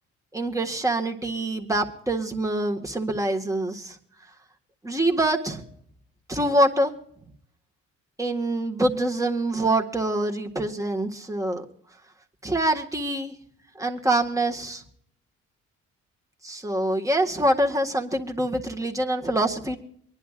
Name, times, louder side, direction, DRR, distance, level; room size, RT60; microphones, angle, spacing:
voice 1, 0.3-4.0 4.8-5.6 6.3-6.9 8.2-11.6 12.4-13.3 13.8-14.8 16.4-19.8, right 1 dB, 10° right, 3 dB, 1.7 m, -25 dB
25.0 x 11.0 x 2.5 m, 0.65 s
cardioid pair, 90°, 30 cm